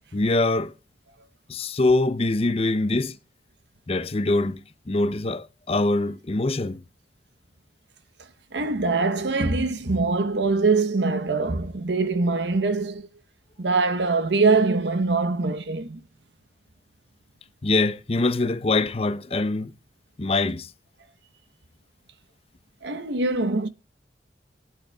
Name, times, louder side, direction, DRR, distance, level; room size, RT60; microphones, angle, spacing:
voice 1, 0.1-0.7 1.5-3.2 3.9-6.8 17.6-19.7 20.2-20.7, left 2 dB, 35° left, 0.7 m, -24 dB
voice 2, 8.5-13.1 13.6-16.0 22.8-23.7, right 3 dB, 80° right, 0.9 m, -23 dB
23.0 x 8.9 x 2.3 m
head